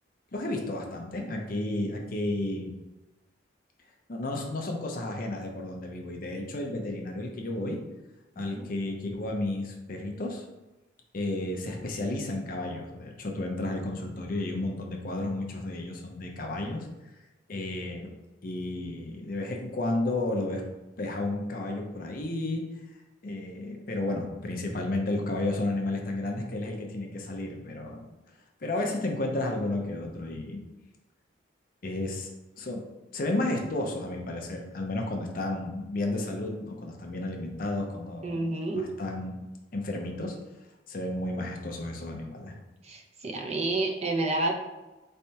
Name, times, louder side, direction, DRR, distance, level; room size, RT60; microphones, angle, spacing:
voice 1, 0.3-2.7 4.1-7.8 8.4-10.4 11.1-16.9 17.5-18.1 18.4-20.6 21.0-22.6 23.2-28.1 28.6-30.6 31.8-32.3 32.6-32.8 33.1-38.4 38.7-39.5 39.7-40.4 40.9-42.5, left 2 dB, 50° left, 1 dB, 0.6 m, -32 dB
voice 2, 38.2-38.8 42.8-44.5, right 2 dB, 35° right, 2 dB, 0.5 m, -29 dB
4.4 x 3.3 x 2.8 m, 1.1 s
head